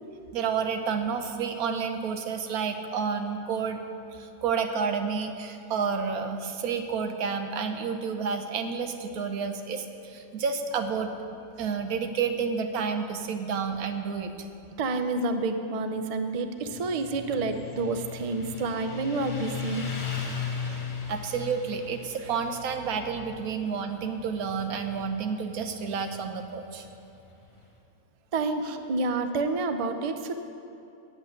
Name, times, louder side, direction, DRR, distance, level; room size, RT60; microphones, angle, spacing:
voice 1, 0.3-3.8 4.2-14.3 21.1-26.9, right 6 dB, 85° right, 6 dB, 1.3 m, -30 dB
voice 2, 14.8-20.1 20.7-20.8 28.3-30.3, right 3 dB, 50° right, 7 dB, 0.4 m, -29 dB
Motorcycle, 16.6-27.7, left 6 dB, 35° left, 1.4 m, -38 dB
8.2 x 8.0 x 8.6 m, 2.8 s
omnidirectional pair, 1.5 m